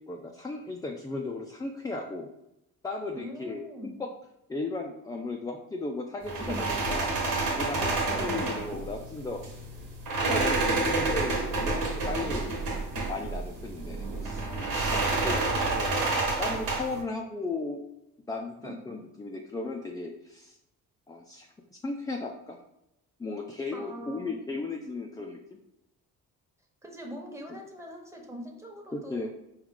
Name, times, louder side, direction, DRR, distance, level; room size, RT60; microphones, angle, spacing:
voice 1, 0.1-2.3 2.8-4.1 4.5-7.1 7.5-9.4 10.3-12.5 13.1-14.5 14.8-16.1 16.4-17.8 18.3-20.6 21.1-22.6 23.2-25.6 28.9-29.3, left 3 dB, 10° left, 1 dB, 0.4 m, -36 dB
voice 2, 3.2-3.9 6.4-6.9 8.1-8.4 18.6-18.7 23.7-24.3 26.8-29.3, equal, 10° right, 1 dB, 1.0 m, -41 dB
sound 1, 6.3-17.0, right 3 dB, 75° right, 1.4 m, -29 dB
4.7 x 2.4 x 3.6 m, 0.86 s
supercardioid pair, 75°, 36 cm